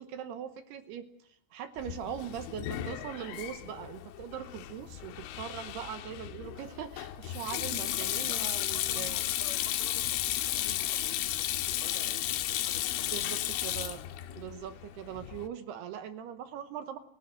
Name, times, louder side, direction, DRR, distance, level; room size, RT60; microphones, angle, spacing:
voice 1, 0.0-9.2 13.1-14.0 14.4-17.0, right 9 dB, 75° right, 9 dB, 2.7 m, -41 dB
Sink (filling or washing), 1.8-15.5, left 13 dB, 85° left, 3.6 m, -34 dB
voice 2, 8.2-13.4, left 8 dB, 70° left, 4 dB, 4.0 m, -51 dB
29.0 x 12.5 x 7.7 m, 0.74 s
omnidirectional pair, 5.5 m